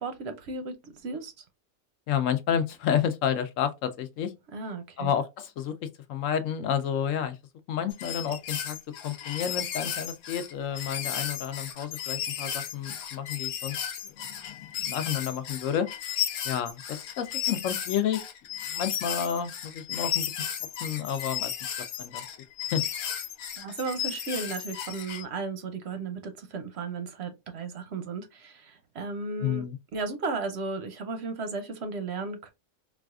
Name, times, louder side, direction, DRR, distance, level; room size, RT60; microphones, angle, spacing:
voice 1, 0.0-1.4 4.5-5.1 23.6-29.6 29.9-32.5, right 4 dB, 60° right, 0.7 m, -35 dB
voice 2, 2.1-4.3 5.0-7.4 7.7-8.8 9.0-13.8 14.0-16.2 16.4-18.3 18.7-20.5 20.8-21.5 22.0-22.2 22.7-22.8 29.4-29.8, left 8 dB, 70° left, 0.9 m, -30 dB
sound 1, 7.9-25.2, left 10 dB, 90° left, 1.2 m, -34 dB
4.0 x 2.4 x 2.3 m
omnidirectional pair, 1.5 m